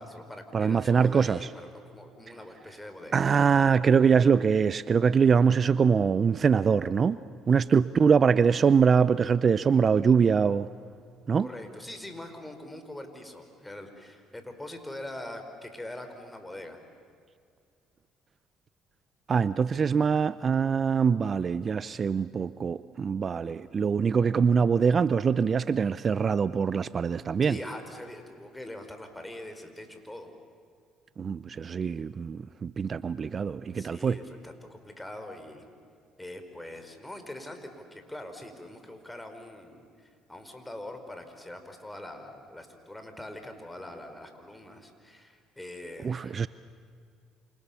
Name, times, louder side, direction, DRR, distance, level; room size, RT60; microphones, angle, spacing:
voice 1, 0.0-3.2 11.4-16.8 27.4-30.3 33.7-35.7 36.2-46.3, left 1 dB, 10° left, 6 dB, 4.7 m, -43 dB
voice 2, 0.5-1.5 3.1-7.2 7.5-10.7 11.3-11.5 19.3-27.6 31.2-34.2 46.0-46.5, right 6 dB, 40° right, 16 dB, 0.6 m, -23 dB
29.0 x 28.0 x 7.2 m, 2.3 s
supercardioid pair, 75°, 0 cm